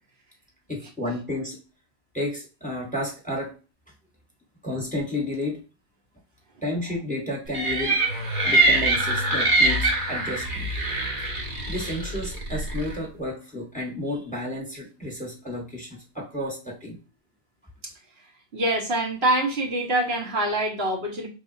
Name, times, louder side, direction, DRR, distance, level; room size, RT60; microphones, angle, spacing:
voice 1, 0.7-1.6 2.1-3.5 4.6-5.6 6.6-10.7 11.7-16.9, left 1 dB, 10° left, 0 dB, 1.3 m, -32 dB
sound 1, 7.5-13.0, right 2 dB, 55° right, 1.3 m, -24 dB
voice 2, 18.5-21.3, right 1 dB, 75° right, -1 dB, 1.5 m, -25 dB
5.2 x 3.4 x 2.7 m, 0.33 s
omnidirectional pair, 1.1 m